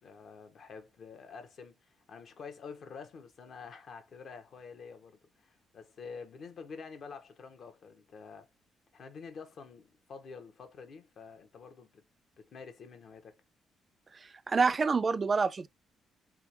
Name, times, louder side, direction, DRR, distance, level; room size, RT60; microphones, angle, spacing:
voice 1, 0.0-8.5 8.9-12.0 12.4-13.4, left 5 dB, 60° left, 1.1 m, -48 dB
voice 2, 14.5-15.7, right 4 dB, 35° right, 0.4 m, -26 dB
3.7 x 3.5 x 3.0 m
cardioid pair, 90°, 0 cm